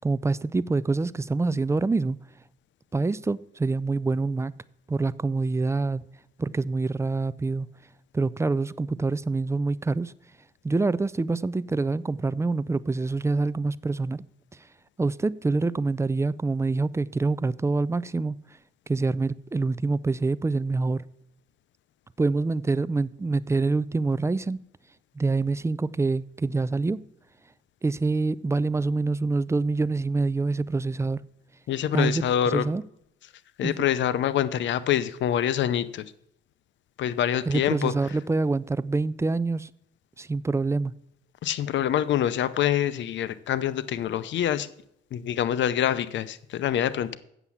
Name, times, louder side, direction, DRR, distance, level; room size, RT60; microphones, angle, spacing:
voice 1, 0.0-2.2 2.9-4.5 4.9-6.0 6.4-7.7 8.1-10.1 10.6-14.2 15.0-18.4 18.9-21.0 22.2-24.6 25.2-27.0 27.8-31.3 31.9-32.8 33.6-33.7 37.5-39.7 40.2-40.9, right 3 dB, 15° right, 19 dB, 0.3 m, -26 dB
voice 2, 31.7-32.7 33.6-36.0 37.0-37.9 41.4-44.7 45.1-47.2, left 10 dB, 70° left, 16 dB, 0.7 m, -25 dB
8.2 x 7.2 x 7.1 m, 0.76 s
cardioid pair, 90°, 20 cm